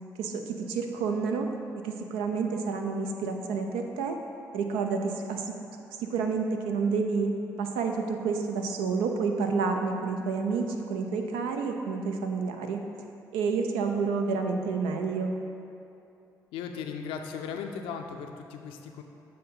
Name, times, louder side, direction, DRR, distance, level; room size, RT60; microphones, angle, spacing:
voice 1, 0.2-1.5 1.8-4.2 4.5-5.5 6.0-7.3 7.6-12.8 13.3-15.3, right 5 dB, 80° right, 4 dB, 0.5 m, -29 dB
voice 2, 16.5-19.0, left 6 dB, 75° left, 5 dB, 0.4 m, -37 dB
7.5 x 2.8 x 5.3 m, 2.8 s
hypercardioid pair, 45°, 9 cm